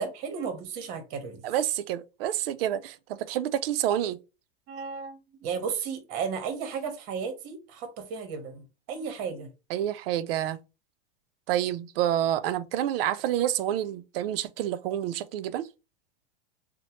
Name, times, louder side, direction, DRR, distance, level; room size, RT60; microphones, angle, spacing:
voice 1, 0.0-1.4 4.7-9.5, right 6 dB, 50° right, 0.9 m, -34 dB
voice 2, 1.4-4.2 9.7-10.6 11.5-15.7, right 11 dB, 70° right, 0.4 m, -28 dB
2.9 x 2.1 x 2.8 m
hypercardioid pair, 115°, 31 cm